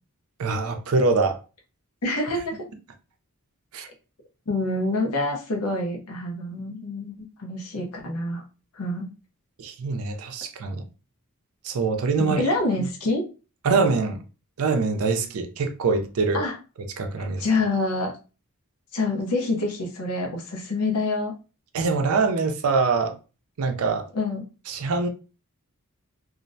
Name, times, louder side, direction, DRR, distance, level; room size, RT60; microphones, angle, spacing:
voice 1, 0.4-1.4 3.7-3.9 9.6-10.8 11.6-12.4 13.6-14.2 14.6-16.4 17.0-17.4 21.7-23.1 23.6-24.1 24.7-25.1, right 4 dB, 75° right, 0.5 m, -24 dB
voice 2, 2.0-2.5 4.5-8.4 8.7-9.1 12.2-13.3 16.3-16.6 17.4-18.1 18.9-21.3 24.1-24.4, left 2 dB, 85° left, 0.7 m, -26 dB
2.4 x 2.0 x 2.6 m
head